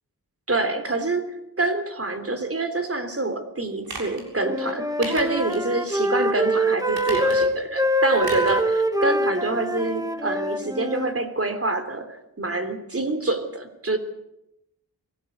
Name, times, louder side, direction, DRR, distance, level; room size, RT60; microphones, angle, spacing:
voice 1, 0.5-12.1 12.4-14.0, right 2 dB, 35° right, 8 dB, 3.3 m, -26 dB
sound 1, 3.8-4.3 5.0-5.7 6.0-6.1 6.9-7.6 8.2-8.6 9.0-9.1, right 2 dB, 70° right, 7.4 m, -36 dB
Wind instrument woodwind instrument, 4.3-11.2, right 1 dB, 10° right, 1.9 m, -24 dB
23.5 x 17.5 x 8.2 m, 0.85 s
wide cardioid pair, 65°, 39 cm